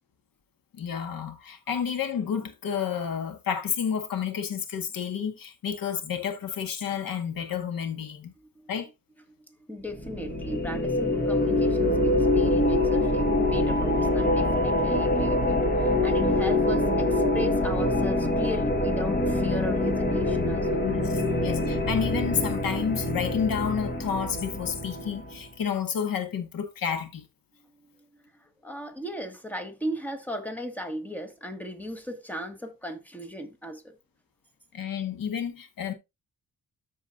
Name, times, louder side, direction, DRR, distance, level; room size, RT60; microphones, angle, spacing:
voice 1, 0.7-8.3 8.7-8.9 20.8-27.3 34.7-35.9, left 7 dB, 80° left, 1.8 m, -30 dB
voice 2, 9.5-20.8 27.7-34.0, equal, 5° left, 1.7 m, -37 dB
sound 1, 9.9-25.4, left 1 dB, 30° left, 1.7 m, -25 dB
13.5 x 4.8 x 2.7 m
wide cardioid pair, 130°, 34 cm